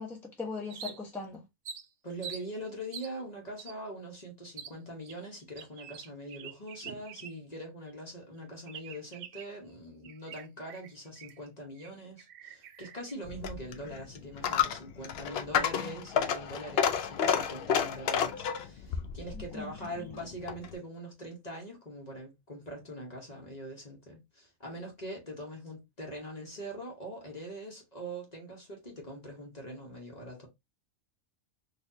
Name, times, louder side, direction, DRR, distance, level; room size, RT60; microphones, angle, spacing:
voice 1, 0.0-1.4 19.3-19.9, left 4 dB, ahead, 0.8 m, -40 dB
sound 1, 0.7-1.2 1.6-2.5 2.9-3.1 3.6-3.7 4.6-4.7 5.1-7.6 7.9-8.0 8.7-9.6 10.0-11.5 11.8-11.9 12.2-13.1, right 7 dB, 65° right, 0.7 m, -46 dB
voice 2, 2.0-30.5, right 1 dB, 35° left, 1.1 m, -43 dB
Coin (dropping), 13.2-20.8, left 8 dB, 65° left, 0.6 m, -31 dB
4.1 x 2.6 x 2.6 m
omnidirectional pair, 1.4 m